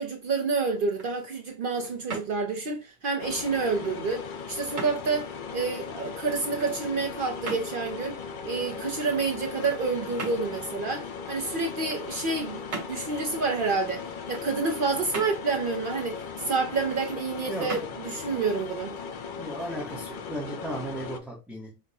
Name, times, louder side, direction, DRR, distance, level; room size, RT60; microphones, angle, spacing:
voice 1, 0.0-8.2 8.4-12.6 12.9-18.9, right 4 dB, 55° right, 0.7 m, -29 dB
sound 1, 0.8-19.6, right 4 dB, 85° right, 1.3 m, -43 dB
sound 2, 3.2-21.2, left 5 dB, 55° left, 0.6 m, -38 dB
voice 2, 17.5-17.8 19.4-21.8, right 1 dB, ahead, 0.7 m, -35 dB
5.2 x 2.1 x 2.6 m
omnidirectional pair, 1.2 m